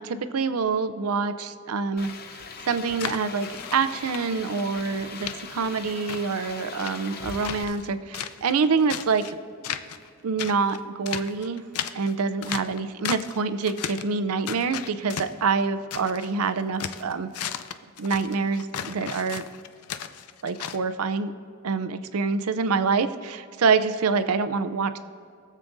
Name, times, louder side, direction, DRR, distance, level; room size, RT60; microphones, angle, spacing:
voice 1, 0.0-2.1 2.7-9.4 10.2-11.6 11.9-17.3 18.0-19.4 20.4-21.3 21.6-25.0, right 5 dB, 75° right, 11 dB, 0.5 m, -26 dB
sound 1, 2.0-7.6, left 5 dB, 45° left, 0.7 m, -40 dB
sound 2, 2.4-4.6 4.9-5.3 5.7-7.9 8.1-9.3 9.6-10.1 10.4-13.4 13.6-14.1 14.5-16.3 16.6-20.8, left 9 dB, 85° left, 0.5 m, -35 dB
22.0 x 7.4 x 2.6 m, 2.4 s
head